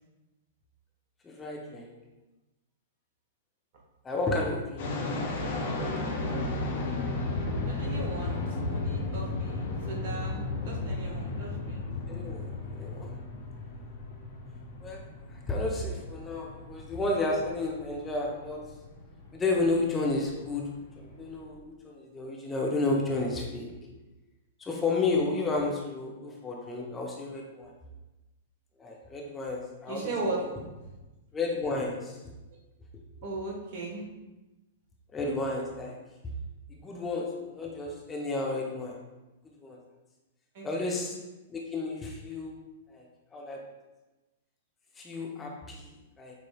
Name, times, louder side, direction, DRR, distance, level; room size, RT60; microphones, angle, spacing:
voice 1, 1.2-1.9 4.0-4.9 12.1-13.2 14.8-15.0 15.3-18.6 19.3-20.6 21.0-24.0 24.6-27.7 28.8-30.1 31.3-32.2 35.1-36.0 36.7-39.0 39.6-39.8 40.6-41.2 41.5-42.6 42.9-43.0 43.3-43.6 45.0-46.4, left 2 dB, 15° left, -1 dB, 0.6 m, -32 dB
sound 1, 4.8-21.5, left 2 dB, 50° left, 0.7 m, -35 dB
voice 2, 7.7-10.4 10.6-11.8 29.9-30.4 30.8-30.9 33.2-34.0 40.5-41.1, right 3 dB, 50° right, -1 dB, 1.1 m, -37 dB
6.7 x 3.1 x 2.2 m, 1.1 s
figure-of-eight pair, 105°, 0 cm